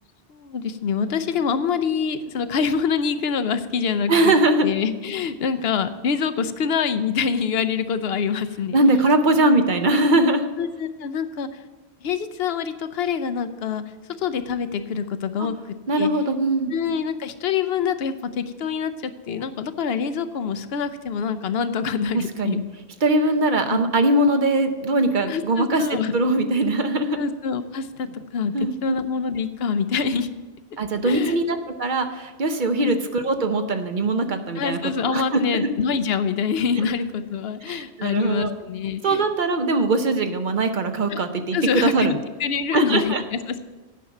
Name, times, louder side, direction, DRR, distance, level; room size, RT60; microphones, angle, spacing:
voice 1, 0.3-4.3 4.6-8.8 10.6-11.5 12.0-13.8 14.2-15.6 16.0-16.1 16.7-22.6 23.7-23.8 25.3-26.1 27.2-28.5 28.8-30.3 31.0-31.4 32.8-32.9 34.6-39.2 41.1-41.2 41.5-43.6, left 6 dB, 70° left, 11 dB, 0.8 m, -25 dB
voice 2, 4.1-4.7 8.7-10.5 15.9-16.7 22.1-22.6 23.0-27.2 28.5-29.0 30.8-35.7 37.7-38.5 39.0-42.2 42.7-43.2, right 2 dB, 50° right, 7 dB, 0.8 m, -21 dB
9.7 x 6.1 x 7.2 m, 1.2 s
omnidirectional pair, 1.1 m